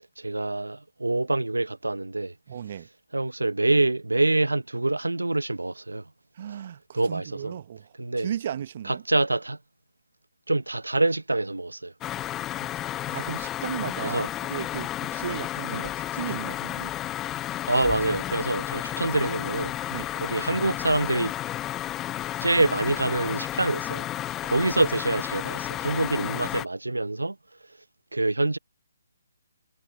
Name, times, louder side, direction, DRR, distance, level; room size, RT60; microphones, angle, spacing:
voice 1, 0.2-2.3 3.1-6.0 6.9-7.6 8.0-8.3 8.8-9.6 10.5-11.9 14.0-14.3 15.7-15.8 17.7-19.7 20.2-21.3 22.4-24.1 24.4-27.4 28.1-28.6, right 2 dB, 90° right, 0.7 m, -26 dB
voice 2, 2.5-2.9 6.3-9.0 13.1-16.9 19.9-20.1, right 9 dB, 45° right, 0.9 m, -35 dB
sound 1, 12.0-26.7, left 13 dB, 15° left, 0.4 m, -32 dB
figure-of-eight pair, 145°, 0 cm